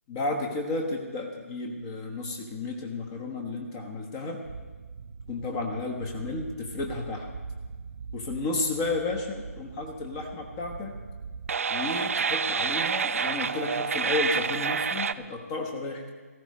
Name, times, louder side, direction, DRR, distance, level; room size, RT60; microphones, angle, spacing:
voice 1, 0.1-4.4 5.3-7.3 8.1-10.9 11.7-16.1, left 3 dB, 25° left, 3 dB, 1.1 m, -32 dB
sound 1, 4.4-15.1, right 6 dB, 60° right, 0.5 m, -32 dB
17.5 x 14.0 x 3.2 m, 1.4 s
figure-of-eight pair, 150°, 9 cm